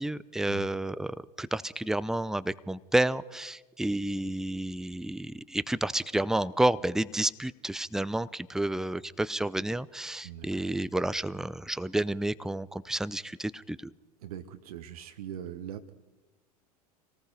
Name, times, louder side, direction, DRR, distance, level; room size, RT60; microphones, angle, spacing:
voice 1, 0.0-13.9, right 1 dB, ahead, 17 dB, 0.6 m, -30 dB
voice 2, 10.2-10.6 14.2-15.9, right 10 dB, 65° right, 8 dB, 1.1 m, -41 dB
26.5 x 18.5 x 5.4 m, 1.1 s
figure-of-eight pair, 80°, 20 cm